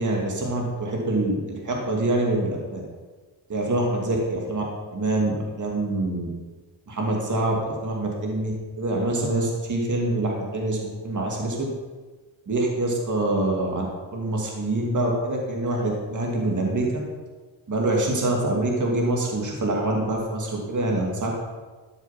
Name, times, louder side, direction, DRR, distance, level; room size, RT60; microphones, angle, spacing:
voice 1, 0.0-2.8 3.5-4.6 4.9-6.3 6.9-11.7 12.5-13.9 14.1-16.9 17.7-21.3, right 2 dB, 40° right, -1 dB, 2.3 m, -25 dB
12.5 x 7.2 x 5.8 m, 1.3 s
wide cardioid pair, 135°, 47 cm